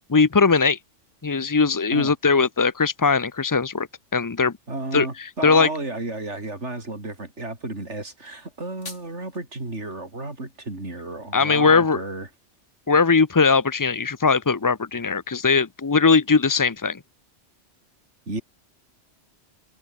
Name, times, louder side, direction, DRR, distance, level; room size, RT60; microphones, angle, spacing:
voice 1, 0.1-0.8 1.2-4.5 4.9-5.7 11.3-12.0 12.9-17.0, left 4 dB, 30° left, 0.4 m, -20 dB
voice 2, 4.7-12.3 18.3-18.4, right 2 dB, 75° right, 5.1 m, -32 dB
sound 1, 8.4-9.4, left 3 dB, 85° left, 3.5 m, -43 dB
omnidirectional pair, 1.2 m